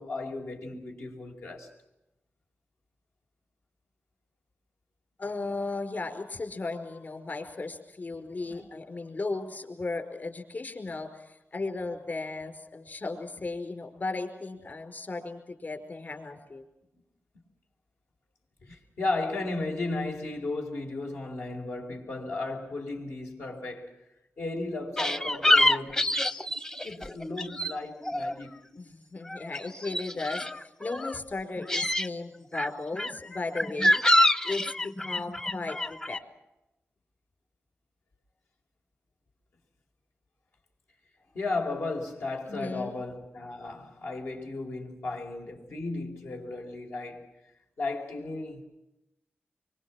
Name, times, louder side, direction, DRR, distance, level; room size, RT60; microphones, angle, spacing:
voice 1, 0.0-1.7 8.4-8.7 18.6-24.0 24.4-26.1 26.8-28.6 41.3-47.3 47.8-48.7, left 2 dB, 80° left, 5.1 m, -35 dB
voice 2, 5.2-16.6 28.8-34.0 34.4-36.2 42.5-43.0, left 3 dB, 45° left, 5.1 m, -36 dB
sound 1, 25.0-27.8 28.0-28.9 29.2-31.2 31.6-32.1 32.5-36.2, left 1 dB, 15° left, 0.8 m, -26 dB
25.0 x 24.5 x 6.2 m
wide cardioid pair, 80°, 4 cm